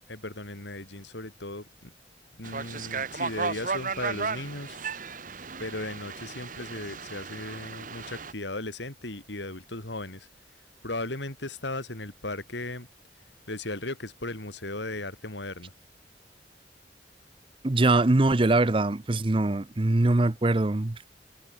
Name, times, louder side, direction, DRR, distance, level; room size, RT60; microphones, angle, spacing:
voice 1, 0.1-1.9 2.4-4.8 5.6-10.3 10.8-12.9 13.5-15.7, left 2 dB, 85° left, 4.4 m, -36 dB
sound 1, 2.4-8.3, right 5 dB, 50° right, 1.6 m, -35 dB
voice 2, 17.6-21.1, right 2 dB, 30° right, 0.7 m, -23 dB
head